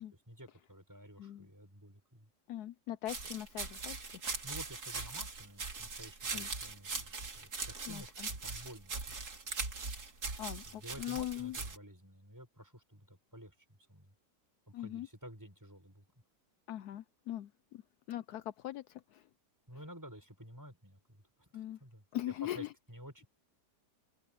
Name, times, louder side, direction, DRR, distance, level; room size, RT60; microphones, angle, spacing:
voice 1, 0.0-2.3 4.4-9.2 10.6-13.5 13.9-14.2 14.7-16.0 19.7-23.3, equal, 10° right, 6.4 m, -52 dB
voice 2, 2.5-4.0 6.3-6.5 7.8-8.3 10.4-11.6 14.7-15.1 16.7-17.8 18.1-19.2 21.5-21.8 22.1-22.7, left 13 dB, 75° left, 1.1 m, -41 dB
sound 1, 3.1-11.8, right 4 dB, 65° right, 3.2 m, -41 dB
open air
omnidirectional pair, 1.8 m